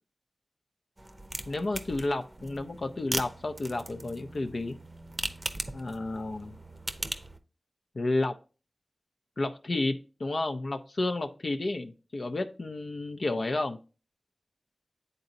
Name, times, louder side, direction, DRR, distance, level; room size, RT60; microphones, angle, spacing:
sound 1, 1.0-7.4, right 1 dB, 25° right, 0.6 m, -39 dB
voice 1, 1.5-4.8 5.7-6.6 7.9-8.3 9.4-13.8, left 2 dB, 60° left, 6 dB, 0.5 m, -31 dB
9.6 x 4.0 x 2.7 m, 0.34 s
wide cardioid pair, 55°, 0 cm